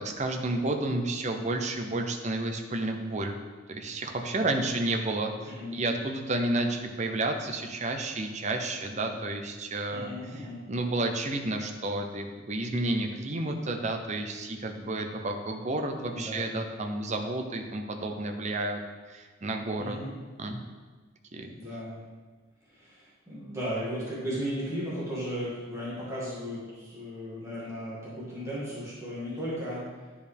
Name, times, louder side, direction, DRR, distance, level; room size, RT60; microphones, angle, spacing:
voice 1, 0.0-3.4 3.7-18.8 19.1-20.0 20.4-20.6 21.3-21.5, right 2 dB, 35° right, 4 dB, 0.7 m, -31 dB
voice 2, 9.9-10.6 16.1-16.6 19.8-20.1 21.6-22.0 22.7-29.8, equal, 15° right, -9 dB, 2.0 m, -36 dB
10.5 x 4.8 x 3.5 m, 1.4 s
head